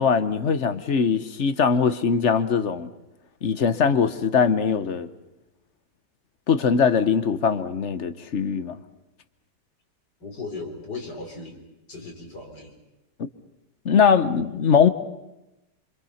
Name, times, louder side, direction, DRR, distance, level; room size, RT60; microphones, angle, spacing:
voice 1, 0.0-2.9 3.4-5.1 6.5-8.8 13.8-14.9, left 6 dB, 50° left, 1.1 m, -21 dB
voice 2, 10.2-11.6 11.9-12.8, left 3 dB, 75° left, 4.7 m, -37 dB
26.0 x 25.5 x 5.8 m
omnidirectional pair, 1.8 m